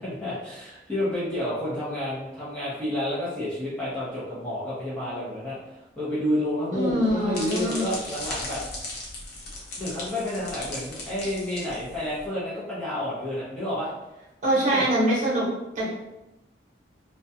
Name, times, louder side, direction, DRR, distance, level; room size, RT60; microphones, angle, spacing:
voice 1, 0.0-8.6 9.8-13.9 14.7-14.8 15.8-15.9, left 1 dB, 5° left, -10 dB, 0.6 m, -30 dB
voice 2, 6.7-7.9 14.4-15.5 15.7-15.9, right 1 dB, 40° right, -7 dB, 1.0 m, -23 dB
sound 1, 6.9-12.2, left 2 dB, 55° left, 0.6 m, -37 dB
2.4 x 2.1 x 2.7 m, 0.97 s
head